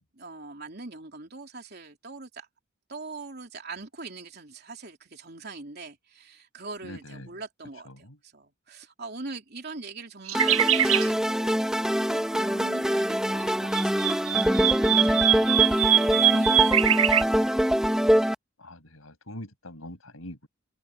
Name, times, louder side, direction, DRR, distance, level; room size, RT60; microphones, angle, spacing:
voice 1, 0.0-2.5 2.9-11.6 12.1-17.3, right 3 dB, 50° right, 3.5 m, -42 dB
voice 2, 6.8-7.3 7.9-8.2 18.6-20.5, left 1 dB, 80° left, 7.1 m, -43 dB
sound 1, 10.3-18.3, equal, 5° right, 1.9 m, -24 dB
sound 2, 10.3-11.1 13.5-17.2, right 11 dB, 85° right, 1.7 m, -23 dB
head